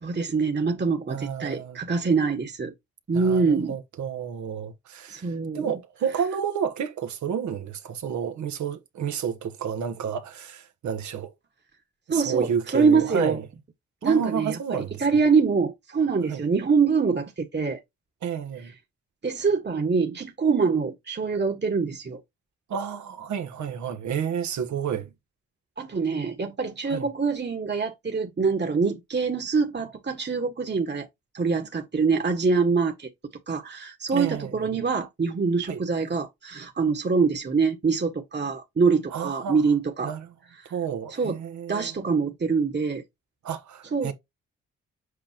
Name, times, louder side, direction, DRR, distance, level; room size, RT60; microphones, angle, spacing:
voice 1, 0.0-2.7 3.1-3.8 5.1-5.7 12.1-13.4 14.0-17.8 19.2-22.2 25.8-31.1 31.3-33.1 33.5-40.1 40.6-40.7 41.1-41.4 41.7-43.0 43.9-44.1, right 5 dB, 35° right, 1.5 m, -24 dB
voice 2, 1.1-1.8 3.1-5.3 5.5-11.3 12.1-13.4 14.0-15.0 16.3-16.4 18.2-18.7 22.7-25.1 26.9-27.1 34.1-34.7 35.7-35.8 39.1-39.6 40.0-40.3 40.7-41.9 43.4-44.1, right 7 dB, 75° right, 1.3 m, -30 dB
8.2 x 5.0 x 2.9 m
supercardioid pair, 45°, 30 cm